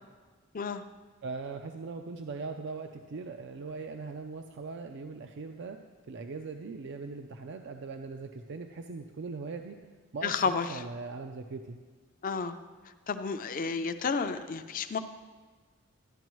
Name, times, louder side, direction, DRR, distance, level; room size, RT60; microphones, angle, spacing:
voice 1, 1.2-5.8 6.1-9.8 10.1-11.8, right 4 dB, 60° right, 5 dB, 0.4 m, -40 dB
voice 2, 10.2-10.8 12.2-12.6 13.1-15.0, left 5 dB, 45° left, 10 dB, 0.5 m, -31 dB
12.0 x 9.9 x 3.1 m, 1.4 s
head